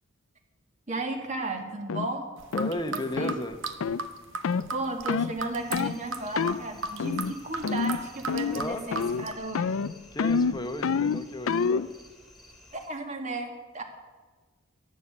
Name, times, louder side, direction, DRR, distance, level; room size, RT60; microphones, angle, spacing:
voice 1, 0.9-2.3 2.9-3.4 4.7-9.8 12.7-13.8, right 2 dB, 30° right, 4 dB, 1.9 m, -34 dB
sound 1, 1.9-2.1 2.5-2.8 3.2-3.4 3.8-4.0 4.4-4.7 5.1-5.3 5.7-6.0 6.4-6.6 7.0-7.4 7.6-8.0 8.3-8.7 8.9-9.3 9.6-11.9, left 5 dB, 70° left, 0.4 m, -27 dB
sound 2, 2.4-9.3, right 4 dB, 60° right, 1.0 m, -36 dB
voice 2, 2.5-3.6 8.5-8.9 10.1-11.9, left 1 dB, 20° left, 7 dB, 1.0 m, -34 dB
sound 3, 5.5-12.9, left 1 dB, ahead, 2.4 m, -53 dB
12.0 x 11.5 x 8.5 m, 1.4 s
head